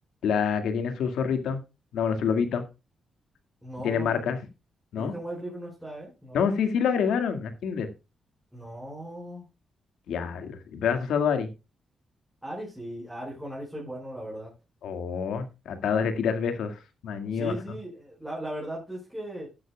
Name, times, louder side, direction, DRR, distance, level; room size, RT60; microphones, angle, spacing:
voice 1, 0.2-1.6 1.9-2.6 3.8-4.4 4.9-5.1 6.3-7.9 10.1-11.5 14.8-17.5, left 6 dB, 90° left, 8 dB, 1.9 m, -27 dB
voice 2, 3.6-4.4 5.0-6.4 8.5-9.5 12.4-14.5 17.3-19.5, right 1 dB, 5° right, -4 dB, 5.2 m, -38 dB
14.5 x 9.9 x 2.3 m, 0.28 s
cardioid pair, 110°, 0 cm